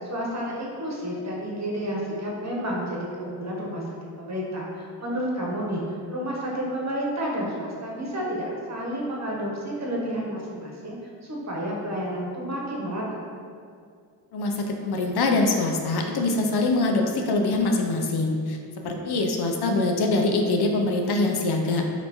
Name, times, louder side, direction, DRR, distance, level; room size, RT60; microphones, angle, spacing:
voice 1, 0.0-3.8 4.2-5.8 6.1-11.0 11.2-13.2, equal, 40° right, -3 dB, 1.0 m, -30 dB
voice 2, 14.3-21.9, left 2 dB, 65° left, 2 dB, 0.5 m, -24 dB
4.2 x 2.6 x 2.9 m, 2.3 s
cardioid pair, 55°, 42 cm